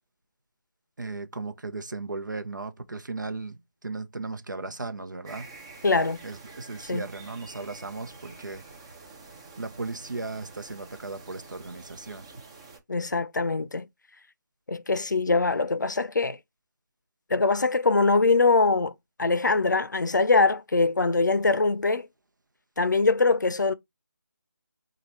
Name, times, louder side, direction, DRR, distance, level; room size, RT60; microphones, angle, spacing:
voice 1, 1.0-5.5 6.2-8.6 9.6-12.2, right 3 dB, 70° right, 0.8 m, -36 dB
sound 1, 5.2-12.8, right 3 dB, 15° right, 0.6 m, -47 dB
voice 2, 5.8-6.2 6.9-7.1 12.9-13.9 14.7-16.4 17.3-18.9 19.2-22.1 22.8-23.7, left 3 dB, 70° left, 0.5 m, -23 dB
4.8 x 2.4 x 3.0 m
figure-of-eight pair, 160°, 10 cm